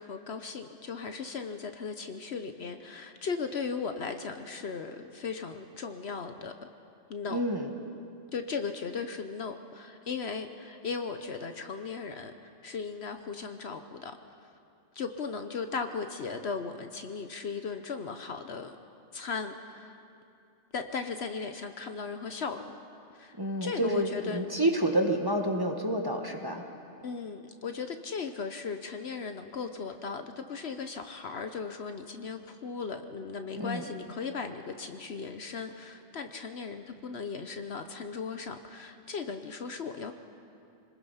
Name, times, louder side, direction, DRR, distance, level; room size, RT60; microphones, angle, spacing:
voice 1, 0.0-6.7 7.1-7.4 8.3-14.2 14.4-14.5 14.9-18.8 19.1-20.0 20.7-22.6 23.1-24.5 27.0-40.1, left 5 dB, 55° left, 8 dB, 1.0 m, -37 dB
voice 2, 7.3-7.7 23.4-26.6 33.6-33.8, right 1 dB, 20° right, 3 dB, 1.3 m, -29 dB
26.0 x 20.0 x 5.7 m, 2.6 s
omnidirectional pair, 1.3 m